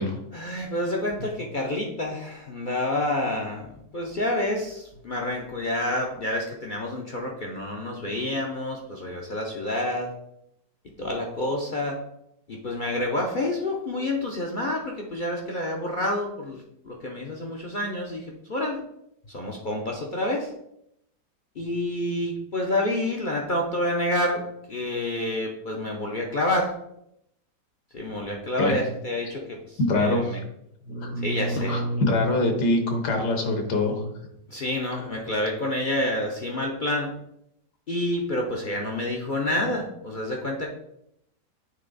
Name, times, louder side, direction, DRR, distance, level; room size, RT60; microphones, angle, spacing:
voice 1, 0.3-3.7 3.9-10.1 11.0-12.0 12.5-18.8 19.3-20.5 21.6-26.7 27.9-30.4 31.2-31.8 34.5-37.1 37.9-40.7, left 1 dB, 55° left, 0 dB, 0.5 m, -28 dB
voice 2, 29.8-30.4 30.8-34.0 34.9-35.1, left 1 dB, 70° left, 5 dB, 1.6 m, -24 dB
8.7 x 3.4 x 3.9 m, 0.78 s
omnidirectional pair, 1.8 m